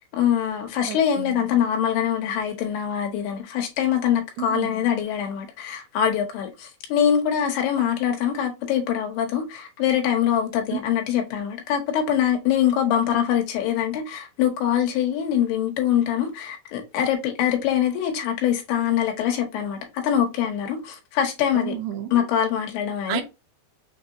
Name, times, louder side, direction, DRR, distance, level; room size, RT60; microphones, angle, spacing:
voice 1, 0.0-21.7 22.1-23.2, left 9 dB, 85° left, 3.0 m, -24 dB
voice 2, 0.9-1.5 4.4-4.8 10.7-10.8 21.5-22.3 23.1-23.2, right 10 dB, 80° right, 2.5 m, -31 dB
6.4 x 2.8 x 2.6 m
omnidirectional pair, 4.5 m